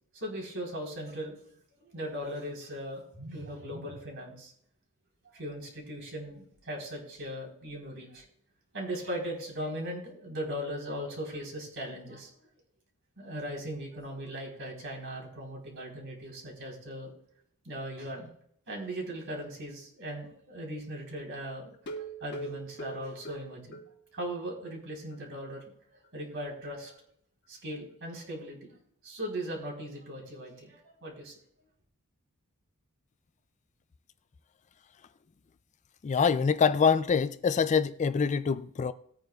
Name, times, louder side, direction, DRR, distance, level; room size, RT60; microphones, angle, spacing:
voice 1, 0.1-1.3 1.8-4.5 5.3-8.3 8.7-12.3 13.2-17.1 17.6-18.3 18.7-23.8 24.1-25.6 25.9-26.9 27.5-28.8 29.0-31.3, equal, 60° right, 3.9 m, -39 dB
sound 1, 21.7-24.3 24.6-24.7 25.1-25.2 25.6-25.7, right 3 dB, 50° left, 1.4 m, -42 dB
voice 2, 36.0-38.9, left 6 dB, 35° left, 0.3 m, -25 dB
19.0 x 9.1 x 2.4 m
head